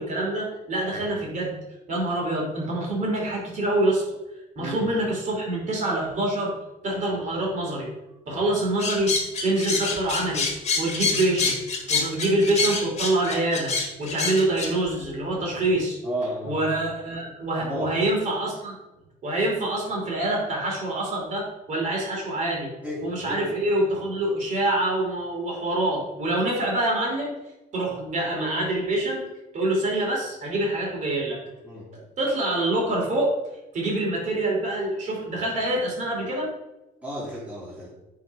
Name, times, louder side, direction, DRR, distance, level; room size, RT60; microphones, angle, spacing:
voice 1, 0.0-1.5 1.9-4.2 4.6-6.5 6.8-7.9 8.3-9.1 9.4-10.5 10.8-11.6 11.9-16.0 16.4-18.7 19.2-22.7 23.0-27.3 27.7-29.2 29.5-31.4 32.2-33.3 33.7-36.5, right 1 dB, 45° right, -2 dB, 2.8 m, -25 dB
voice 2, 4.6-4.9 16.0-16.6 17.6-17.9 22.8-23.5 31.6-31.9 37.0-37.9, right 1 dB, 10° right, -8 dB, 2.8 m, -33 dB
sound 1, 8.8-14.7, left 4 dB, 40° left, 1.6 m, -26 dB
8.2 x 3.9 x 5.3 m, 1.0 s
cardioid pair, 110°, 17 cm